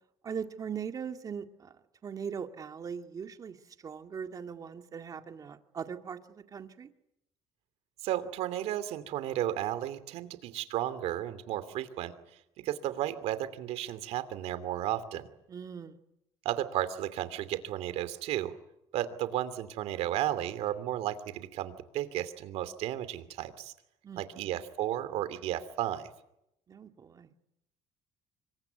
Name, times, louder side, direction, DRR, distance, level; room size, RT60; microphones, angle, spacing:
voice 1, 0.2-6.9 15.5-16.0 24.0-24.6 26.7-27.3, right 7 dB, 35° right, 7 dB, 2.1 m, -40 dB
voice 2, 8.0-12.1 12.6-15.3 16.4-18.5 18.9-23.7 24.2-26.1, right 12 dB, 70° right, 13 dB, 2.8 m, -33 dB
26.0 x 23.5 x 9.4 m, 0.83 s
cardioid pair, 135°, 11 cm